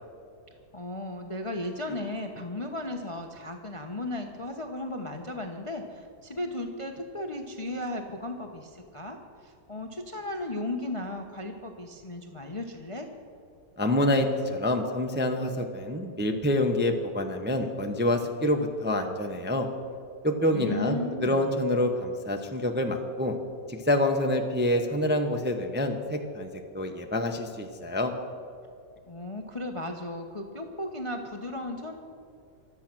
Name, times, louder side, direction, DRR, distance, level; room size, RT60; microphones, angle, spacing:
voice 1, 0.7-13.1 20.5-21.5 29.1-32.0, left 1 dB, 25° left, 4 dB, 0.7 m, -35 dB
voice 2, 13.8-19.7 20.2-23.4 23.7-26.5 26.7-28.1, left 1 dB, 10° right, 4 dB, 0.7 m, -27 dB
24.0 x 8.4 x 6.1 m, 2.4 s
omnidirectional pair, 1.9 m